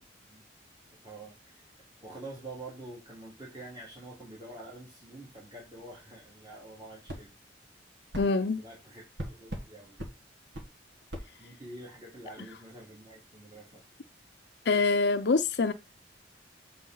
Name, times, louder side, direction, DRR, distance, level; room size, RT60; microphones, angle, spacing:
voice 1, 1.0-1.7 2.0-7.3 8.4-10.0 11.4-13.8, right 2 dB, 25° right, 2.4 m, -47 dB
sound 1, 7.1-7.2 8.1-8.3 9.2-9.7 10.0-10.1 10.5-10.7 11.1-11.3, equal, 80° right, 1.6 m, -38 dB
voice 2, 8.2-8.6 14.7-15.7, left 3 dB, 65° left, 0.6 m, -25 dB
7.6 x 4.5 x 4.0 m
head